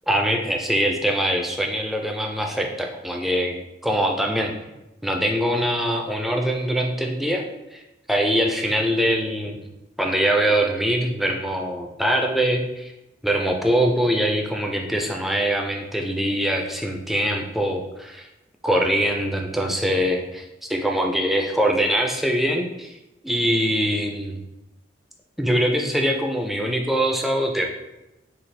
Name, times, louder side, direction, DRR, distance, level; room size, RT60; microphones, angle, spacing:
voice 1, 0.1-3.6 3.8-4.5 5.0-7.4 7.7-7.8 8.1-9.7 10.0-12.9 13.2-18.3 18.6-23.0 23.2-24.4 25.4-27.7, equal, ahead, 1 dB, 0.3 m, -23 dB
4.0 x 2.4 x 3.2 m, 0.96 s
head